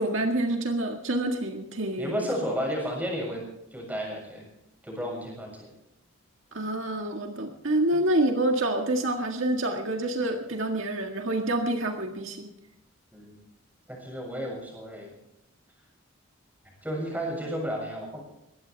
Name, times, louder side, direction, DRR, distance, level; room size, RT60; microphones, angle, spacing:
voice 1, 0.0-2.3 6.5-12.5, right 1 dB, 70° right, 2 dB, 1.9 m, -27 dB
voice 2, 2.0-3.4 3.7-4.5 4.8-5.7 13.1-13.4 13.9-15.1 16.8-18.2, equal, 5° right, -1 dB, 7.0 m, -32 dB
21.5 x 17.0 x 3.5 m, 0.84 s
head